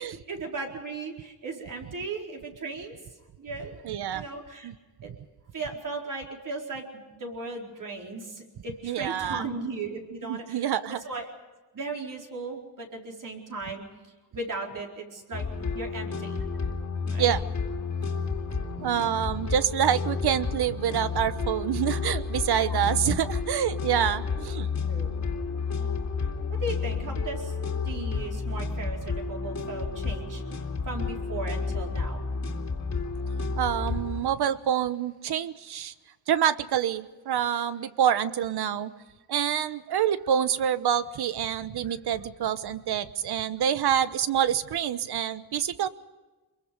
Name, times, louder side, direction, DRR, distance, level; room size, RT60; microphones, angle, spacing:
voice 1, 0.3-2.9 3.4-3.8 4.1-4.7 5.0-5.1 5.5-11.3 11.7-13.9 14.3-15.4 15.7-16.4 17.1-17.4 22.5-22.8 24.0-24.3 24.9-25.1 26.5-27.5 27.8-30.4 30.9-32.3, right 3 dB, 50° right, 0 dB, 4.4 m, -37 dB
voice 2, 3.8-4.2 4.6-4.7 8.8-9.4 10.2-11.0 17.2-17.4 18.0-18.1 18.8-24.7 33.6-35.9 36.3-38.9 39.3-45.9, right 9 dB, 65° right, 14 dB, 1.1 m, -27 dB
sound 1, 15.3-34.2, left 4 dB, 40° left, 2.6 m, -31 dB
24.5 x 22.5 x 5.3 m, 1.2 s
wide cardioid pair, 140°, 41 cm